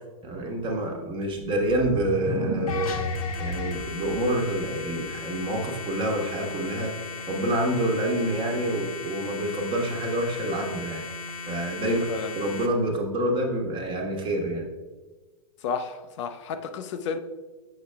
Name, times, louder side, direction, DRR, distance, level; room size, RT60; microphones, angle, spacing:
voice 1, 0.2-3.0 3.4-6.9 7.3-11.0 11.5-12.0 12.3-14.7, right 1 dB, 25° right, 1 dB, 1.2 m, -27 dB
sound 1, 1.4-5.1, right 2 dB, 65° right, 0.8 m, -35 dB
sound 2, 2.7-12.7, left 3 dB, 80° left, 0.9 m, -36 dB
voice 2, 11.8-12.3 15.6-17.2, left 5 dB, 55° left, 8 dB, 0.5 m, -31 dB
6.7 x 6.3 x 2.3 m, 1.3 s
hypercardioid pair, 115°, 18 cm